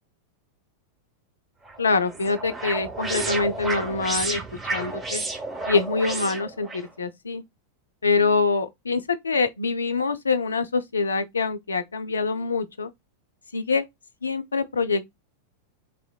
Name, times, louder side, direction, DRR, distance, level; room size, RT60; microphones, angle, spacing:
sound 1, 1.7-6.9, right 3 dB, 15° right, 0.6 m, -31 dB
voice 1, 1.8-4.4 4.7-5.2 5.7-7.4 8.0-12.9 13.5-13.9 14.2-15.1, left 4 dB, 75° left, 0.4 m, -25 dB
3.1 x 2.9 x 2.2 m
figure-of-eight pair, 90°, 0 cm